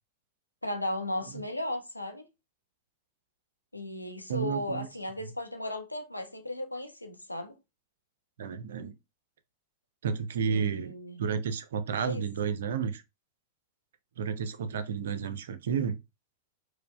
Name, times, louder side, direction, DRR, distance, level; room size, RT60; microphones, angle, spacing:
voice 1, 0.6-2.3 3.7-7.6 10.5-11.2 12.0-12.2, left 1 dB, 85° left, 0.5 m, -35 dB
voice 2, 4.3-4.9 8.4-8.9 10.0-10.9 11.2-13.0 14.2-16.0, right 6 dB, 60° right, 0.4 m, -31 dB
4.5 x 2.1 x 2.3 m
figure-of-eight pair, 90°, 0 cm